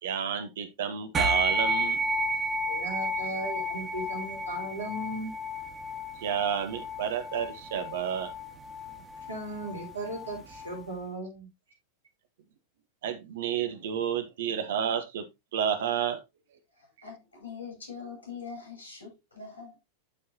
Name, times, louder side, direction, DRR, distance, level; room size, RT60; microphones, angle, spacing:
voice 1, 0.0-2.0 6.2-8.3 13.0-16.2, right 8 dB, 55° right, 1.2 m, -30 dB
sound 1, 1.1-10.8, right 1 dB, 20° right, 1.8 m, -32 dB
voice 2, 2.6-5.3 9.3-11.5, right 1 dB, 75° right, 3.8 m, -37 dB
voice 3, 17.0-19.7, left 5 dB, 75° left, 5.2 m, -43 dB
11.5 x 4.8 x 2.8 m
figure-of-eight pair, 90°, 0 cm